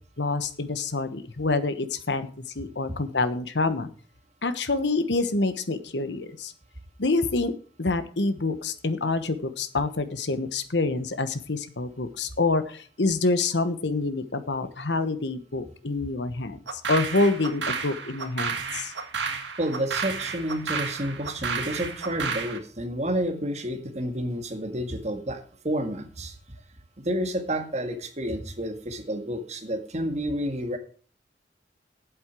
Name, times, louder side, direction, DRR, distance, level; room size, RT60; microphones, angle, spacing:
voice 1, 0.2-2.3 2.5-3.9 4.4-6.5 7.0-7.5 7.8-18.9, left 3 dB, 80° left, 11 dB, 1.2 m, -27 dB
sound 1, 16.7-22.6, right 5 dB, 90° right, 1.8 m, -32 dB
voice 2, 19.6-26.3 27.0-30.8, equal, 40° right, 5 dB, 1.9 m, -30 dB
8.6 x 7.9 x 7.5 m, 0.41 s
head